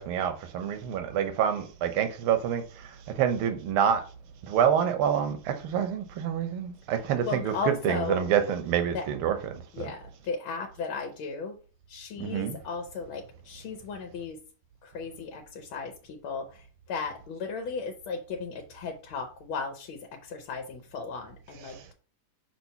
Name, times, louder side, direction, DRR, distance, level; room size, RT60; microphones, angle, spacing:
voice 1, 0.0-2.6 3.2-4.0 4.4-7.5 7.8-9.9 12.2-12.6, right 8 dB, 80° right, 1.7 m, -27 dB
voice 2, 7.2-8.2 8.9-9.1 9.7-11.6 11.9-14.4 14.8-21.9, left 5 dB, 75° left, 1.7 m, -36 dB
6.0 x 3.0 x 5.5 m
omnidirectional pair, 2.3 m